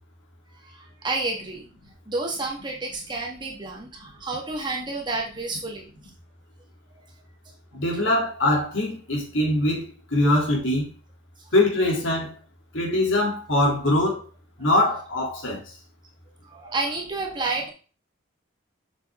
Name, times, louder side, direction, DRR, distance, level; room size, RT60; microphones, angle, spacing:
voice 1, 0.6-1.7 2.1-5.9 16.4-17.7, right 3 dB, 25° right, 1.7 m, -30 dB
voice 2, 7.7-9.8 10.1-10.8 11.5-12.3 12.7-14.2 14.6-15.6, left 1 dB, 75° left, 3.1 m, -22 dB
7.2 x 6.6 x 3.7 m
head